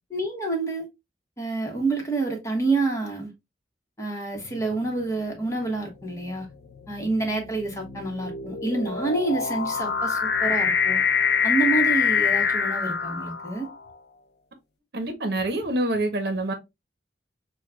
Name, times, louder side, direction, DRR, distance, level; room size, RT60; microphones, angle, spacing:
voice 1, 0.1-0.9 1.4-3.3 4.0-6.5 6.9-11.0 11.4-13.7, right 3 dB, 15° left, 1.1 m, -28 dB
sound 1, 4.4-4.8 5.7-13.9, left 6 dB, 70° left, 0.5 m, -25 dB
voice 2, 14.9-16.5, right 1 dB, 65° right, 0.9 m, -26 dB
6.3 x 2.3 x 2.2 m
head